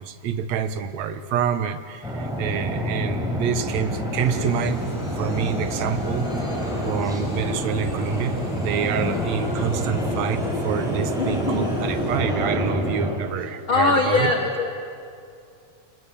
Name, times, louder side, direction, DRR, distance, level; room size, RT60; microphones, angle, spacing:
voice 1, 0.0-4.8 5.2-6.3 6.8-14.3, right 7 dB, 70° right, 10 dB, 2.3 m, -27 dB
sound 1, 2.0-13.1, equal, ahead, 5.6 m, -27 dB
sound 2, 4.1-12.2, equal, 30° left, 7.8 m, -41 dB
voice 2, 11.2-11.7 13.7-14.7, left 3 dB, 50° left, 4 dB, 1.9 m, -22 dB
27.5 x 25.5 x 8.5 m, 2.4 s
omnidirectional pair, 3.4 m